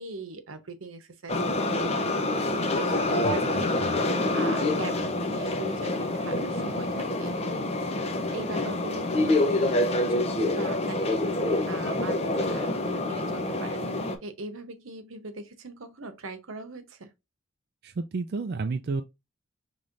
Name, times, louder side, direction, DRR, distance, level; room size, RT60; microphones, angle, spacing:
voice 1, 0.0-1.6 1.9-2.3 2.7-12.7 13.0-17.1, right 2 dB, 85° right, 0.9 m, -41 dB
sound 1, 1.3-14.2, left 2 dB, 30° left, 0.6 m, -27 dB
voice 2, 3.2-4.1 17.8-19.0, right 4 dB, 50° right, 0.4 m, -32 dB
5.4 x 3.2 x 2.5 m
head